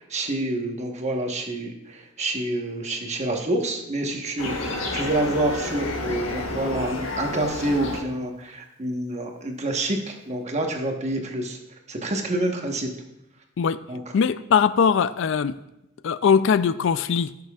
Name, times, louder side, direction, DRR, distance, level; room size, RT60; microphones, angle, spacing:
voice 1, 0.0-11.6 11.9-12.9 13.9-14.0, right 1 dB, 35° right, 2 dB, 1.2 m, -27 dB
sound 1, 4.4-8.0, left 2 dB, 85° left, 1.4 m, -30 dB
voice 2, 14.1-15.6 16.0-17.3, left 6 dB, 65° left, 14 dB, 0.4 m, -20 dB
16.0 x 6.7 x 2.4 m, 0.88 s
head